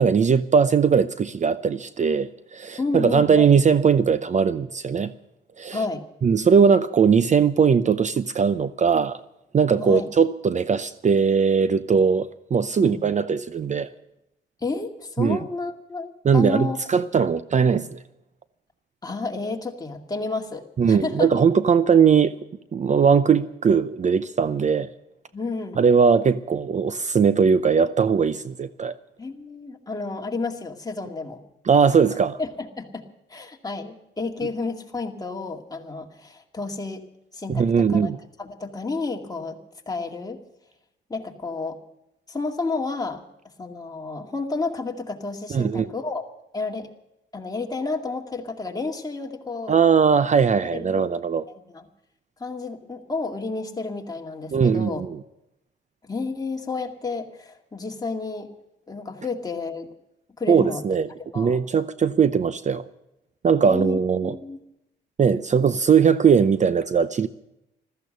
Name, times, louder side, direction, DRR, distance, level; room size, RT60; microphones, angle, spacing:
voice 1, 0.0-5.1 5.6-5.8 6.2-9.2 9.5-13.9 15.2-15.4 16.2-18.0 20.8-22.3 22.7-24.9 25.8-28.9 31.6-32.4 37.5-38.2 45.5-45.9 49.7-51.4 54.5-55.1 60.5-61.1 61.3-62.8 63.4-64.4 65.2-67.3, right 6 dB, 35° right, 0.6 m, -20 dB
voice 2, 2.8-3.5 5.7-6.0 9.8-10.1 12.8-13.0 14.6-16.8 19.0-21.3 25.3-25.8 29.2-31.4 32.4-33.0 33.3-37.0 37.3-38.1 38.4-39.6 39.9-40.4 41.1-41.8 42.3-43.2 43.6-46.2 46.5-46.9 47.3-49.7 50.7-51.1 51.7-51.9 52.4-55.0 56.0-58.5 58.9-59.9 60.4-60.9 61.3-61.6 63.7-64.6, left 3 dB, 20° left, 2.3 m, -31 dB
15.0 x 14.0 x 6.7 m
cardioid pair, 90°, 20 cm